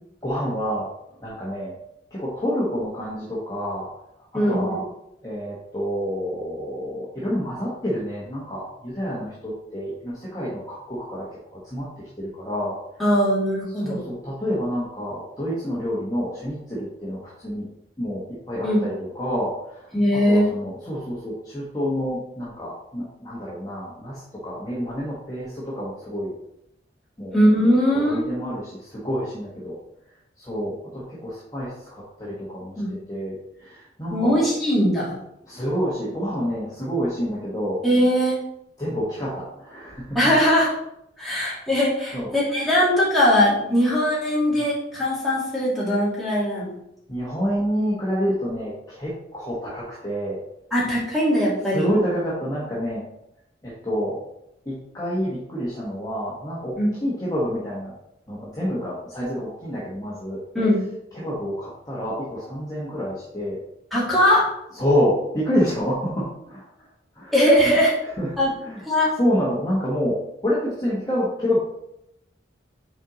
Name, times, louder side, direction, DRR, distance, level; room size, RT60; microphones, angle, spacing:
voice 1, 0.2-0.9 1.2-1.7 2.1-3.9 4.3-4.8 5.2-12.8 13.7-17.7 18.0-26.3 27.2-27.4 28.1-29.7 30.4-34.4 35.5-37.8 38.8-40.3 41.2-41.4 42.1-42.3 47.1-50.4 51.7-53.0 53.6-54.2 54.6-57.9 58.3-60.4 61.1-63.6 64.7-66.7 67.1-67.3 68.2-68.3 68.6-68.8 69.2-71.6, equal, 20° left, -8 dB, 1.4 m, -28 dB
voice 2, 4.3-4.7 13.0-14.0 18.6-18.8 19.9-20.5 27.3-28.2 32.8-32.9 34.1-35.1 37.8-38.3 40.1-40.7 41.2-46.7 50.7-51.8 56.8-56.9 60.5-60.8 63.9-64.4 67.3-67.9 68.4-68.5 68.9-69.1, equal, ahead, -9 dB, 2.4 m, -20 dB
6.1 x 4.4 x 4.0 m, 0.81 s
head